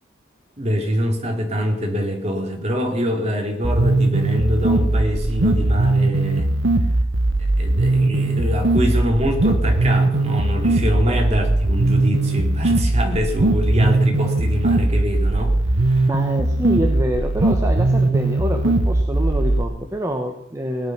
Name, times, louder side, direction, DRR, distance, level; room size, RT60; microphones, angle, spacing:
voice 1, 0.6-6.5 7.6-16.1, equal, 30° right, 2 dB, 2.7 m, -24 dB
sound 1, 3.6-19.6, right 2 dB, 70° right, 1.1 m, -19 dB
voice 2, 16.1-20.9, equal, 15° right, 3 dB, 1.0 m, -26 dB
17.5 x 10.5 x 6.0 m, 0.81 s
head